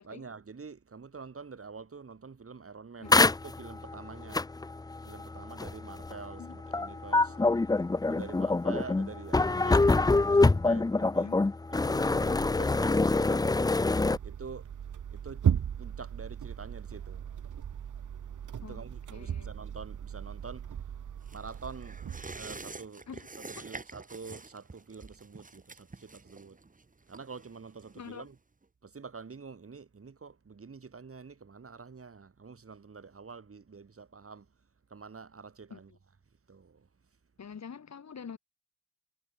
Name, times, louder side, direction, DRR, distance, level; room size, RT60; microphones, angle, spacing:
voice 1, 0.0-4.5 5.0-7.3 8.1-10.0 10.3-11.3 11.7-13.7 14.2-14.7 15.1-15.4 15.8-17.3 18.6-20.8 21.3-22.0 22.3-23.1 23.6-26.6 27.1-28.4 28.8-34.5 34.9-35.9 36.5-36.9, right 5 dB, 45° right, 6.3 m, -46 dB
voice 2, 3.0-3.3 6.4-6.5 6.9-7.5 11.0-11.5 18.6-18.8 19.1-19.5 23.1-23.3 23.5-23.7 27.9-28.3 35.7-35.8 37.4-38.4, left 6 dB, 60° left, 3.0 m, -46 dB
sound 1, 3.1-14.2, left 3 dB, 15° left, 0.4 m, -25 dB
sound 2, 14.0-22.7, right 8 dB, 75° right, 1.7 m, -36 dB
sound 3, 21.3-28.3 28.6-28.7, right 3 dB, 25° right, 2.6 m, -47 dB
wide cardioid pair, 100°, 31 cm